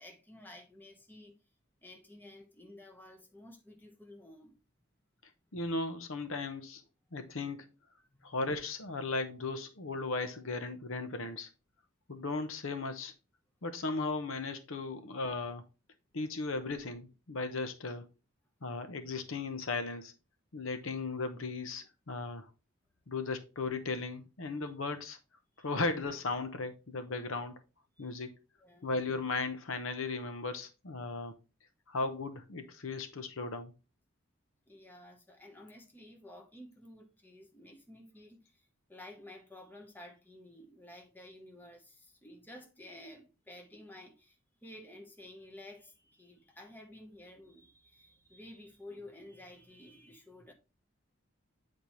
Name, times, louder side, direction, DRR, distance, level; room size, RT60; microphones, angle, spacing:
voice 1, 0.0-1.4 1.8-4.5 8.0-8.3 24.6-24.7 25.6-25.8 28.0-28.1 28.6-28.9 34.7-50.5, left 1 dB, 10° left, 1.0 m, -52 dB
voice 2, 5.5-6.8 7.1-7.7 8.2-11.5 12.1-13.1 13.6-15.6 16.1-18.0 18.6-20.1 20.5-22.5 23.1-25.2 25.6-27.6 28.0-28.3 28.8-31.4 31.9-33.7, left 3 dB, 70° left, 0.9 m, -36 dB
8.3 x 4.3 x 3.1 m
head